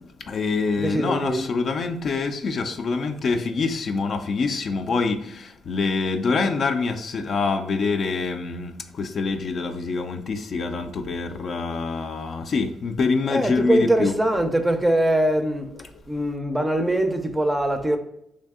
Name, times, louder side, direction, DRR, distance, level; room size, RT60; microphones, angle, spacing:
voice 1, 0.3-14.1, left 4 dB, 55° left, 0.4 m, -25 dB
voice 2, 0.8-1.4 13.3-15.7 16.1-18.0, right 1 dB, 10° right, 0.5 m, -22 dB
3.3 x 2.6 x 3.5 m
cardioid pair, 90°, 0 cm